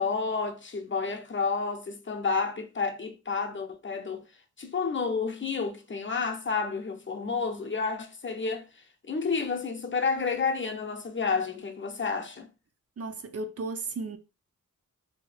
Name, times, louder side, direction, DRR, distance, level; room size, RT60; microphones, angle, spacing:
voice 1, 0.0-4.2 4.6-12.5, left 5 dB, 40° left, 0.6 m, -30 dB
voice 2, 13.0-14.2, right 3 dB, 50° right, 0.5 m, -34 dB
2.7 x 2.7 x 3.2 m
wide cardioid pair, 80°, 32 cm